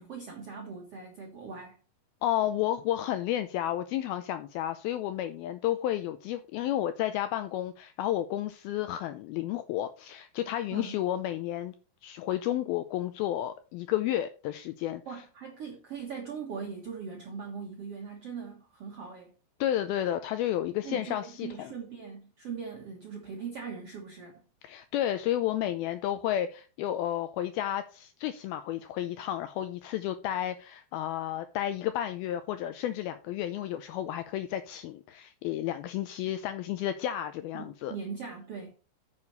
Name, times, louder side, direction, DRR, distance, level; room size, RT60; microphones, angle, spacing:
voice 1, 0.0-1.8 10.7-11.0 15.1-19.3 20.8-24.3 37.5-38.7, right 6 dB, 70° right, 1.4 m, -40 dB
voice 2, 2.2-11.7 12.0-15.2 19.6-21.7 24.6-38.0, left 12 dB, 90° left, 2.2 m, -32 dB
9.5 x 6.9 x 4.1 m
omnidirectional pair, 4.9 m